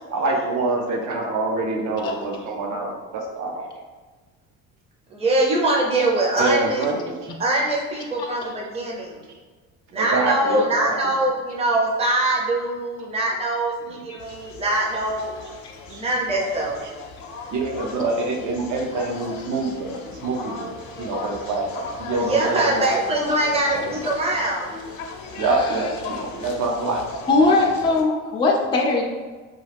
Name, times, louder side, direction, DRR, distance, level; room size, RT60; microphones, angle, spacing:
voice 1, 0.1-3.6 6.4-7.3 10.0-11.1 15.9-16.0 17.5-20.7 21.0-21.6 22.0-22.8 23.7-23.9 25.4-27.0 27.4-27.7, right 3 dB, 55° right, 0 dB, 0.7 m, -26 dB
voice 2, 5.1-6.9 7.4-9.2 9.9-15.3 15.9-16.8 22.2-24.7, right 2 dB, 15° right, -3 dB, 0.7 m, -23 dB
sound 1, 14.2-28.0, left 3 dB, 70° left, 0.6 m, -37 dB
voice 3, 25.4-25.8 27.3-29.0, left 3 dB, 15° left, 0 dB, 0.3 m, -20 dB
2.4 x 2.3 x 3.3 m, 1.4 s
supercardioid pair, 85°, 35 cm